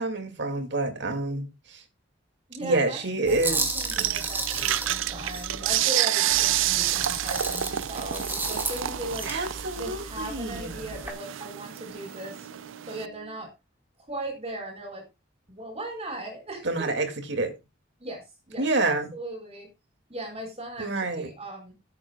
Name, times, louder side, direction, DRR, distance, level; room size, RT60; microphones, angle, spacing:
voice 1, 0.0-1.8 2.6-3.6 4.0-4.2 9.2-10.9 16.6-17.5 18.6-19.1 20.8-21.3, right 2 dB, 65° right, 2.3 m, -28 dB
voice 2, 2.5-9.3 9.8-12.5 12.9-13.5 14.1-15.0 15.5-16.9 18.0-19.7 20.1-21.7, right 1 dB, 30° right, 5.0 m, -38 dB
sound 1, 3.3-5.8 6.3-11.1, right 2 dB, 10° right, 2.3 m, -34 dB
sound 2, 3.4-13.4, right 11 dB, 30° left, 6.4 m, -51 dB
sound 3, 3.8-13.1, right 13 dB, 85° right, 0.5 m, -29 dB
17.0 x 8.5 x 2.3 m
head